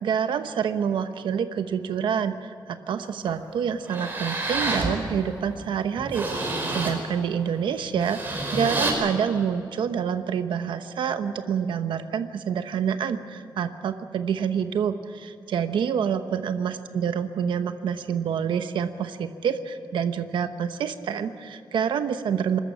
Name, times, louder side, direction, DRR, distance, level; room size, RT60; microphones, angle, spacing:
voice 1, 0.0-22.6, right 7 dB, 80° right, 9 dB, 1.0 m, -27 dB
sound 1, 3.3-3.4 3.8-4.9 5.4-5.5 5.9-7.0 7.9-8.9, right 2 dB, 25° right, 5.0 m, -28 dB
25.0 x 13.5 x 8.8 m, 2.7 s
wide cardioid pair, 145°, 8 cm